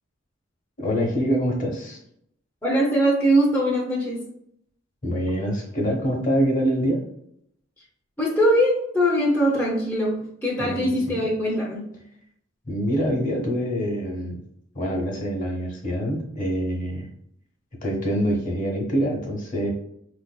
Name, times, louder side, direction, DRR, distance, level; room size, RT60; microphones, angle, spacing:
voice 1, 0.8-2.0 5.0-7.0 10.6-11.2 12.7-14.4 14.7-17.1 17.8-19.7, equal, 45° left, 0 dB, 0.9 m, -25 dB
voice 2, 2.6-4.2 8.2-11.9, equal, 10° left, -5 dB, 0.6 m, -22 dB
4.1 x 2.6 x 2.2 m, 0.72 s
head